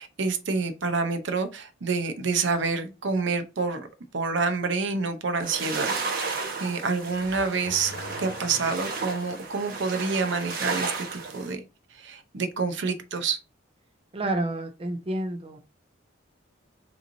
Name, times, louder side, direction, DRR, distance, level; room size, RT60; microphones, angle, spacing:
voice 1, 0.0-3.9 4.1-11.6 11.9-13.4, right 4 dB, 65° right, 0.7 m, -28 dB
sound 1, 5.4-11.5, right 4 dB, 45° right, 1.2 m, -33 dB
Car / Accelerating revving vroom, 7.1-9.4, left 2 dB, 85° left, 1.0 m, -43 dB
voice 2, 14.1-15.6, right 1 dB, 30° right, 0.5 m, -29 dB
5.3 x 3.1 x 2.7 m
head